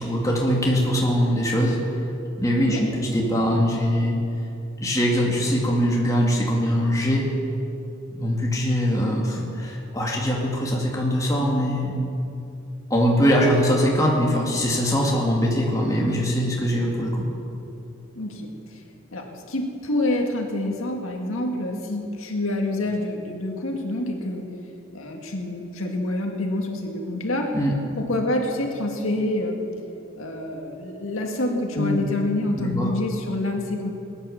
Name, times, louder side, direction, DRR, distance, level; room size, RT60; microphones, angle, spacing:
voice 1, 0.0-1.8 2.4-4.2 4.8-7.3 8.1-12.0 12.9-17.3 27.5-27.7 31.8-32.0 32.6-32.9, equal, 15° left, -3 dB, 2.3 m, -22 dB
voice 2, 18.1-18.8 19.1-24.4 24.9-27.5 27.9-29.6 30.2-33.9, left 1 dB, 90° left, 2 dB, 2.0 m, -27 dB
19.5 x 10.0 x 7.2 m, 2.8 s
head